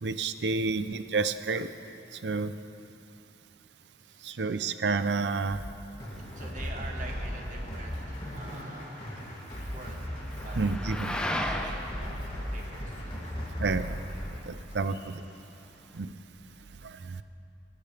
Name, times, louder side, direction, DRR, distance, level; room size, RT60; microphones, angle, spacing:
voice 1, 0.0-1.7 2.2-2.5 4.2-5.6 10.6-11.1 13.6-14.0 14.5-15.2 15.9-16.1 16.8-17.2, right 4 dB, 75° right, 12 dB, 0.6 m, -30 dB
voice 2, 0.6-0.9 4.0-4.7 6.3-9.4 9.7-10.0 10.4-10.6 11.0-13.4 14.6-14.8 15.4-15.5, right 3 dB, 45° right, 1 dB, 1.7 m, -47 dB
sound 1, 5.5-14.2, equal, 30° left, 2.6 m, -37 dB
sound 2, 6.1-16.0, left 1 dB, 5° left, 0.7 m, -40 dB
Applause, 6.4-15.2, left 1 dB, 45° left, 3.7 m, -51 dB
24.0 x 12.5 x 3.5 m, 2.7 s
head